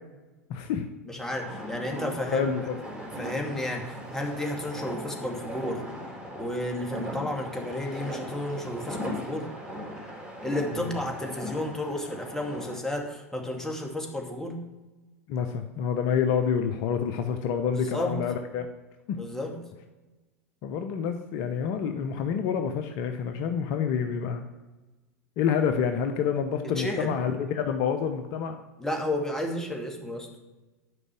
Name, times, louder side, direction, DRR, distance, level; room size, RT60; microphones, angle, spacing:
voice 1, 0.5-0.9 2.3-2.8 15.3-18.7 19.1-19.2 20.6-24.4 25.4-28.6, left 7 dB, 50° left, 7 dB, 0.9 m, -28 dB
voice 2, 1.1-2.5 3.2-5.8 6.3-9.5 10.4-14.6 17.7-18.2 19.2-19.6 26.8-27.1 28.8-30.3, left 1 dB, 5° left, 1 dB, 2.5 m, -32 dB
sound 1, 1.3-12.8, equal, 10° right, 4.3 m, -38 dB
11.0 x 5.4 x 7.6 m, 1.1 s
figure-of-eight pair, 90°, 8 cm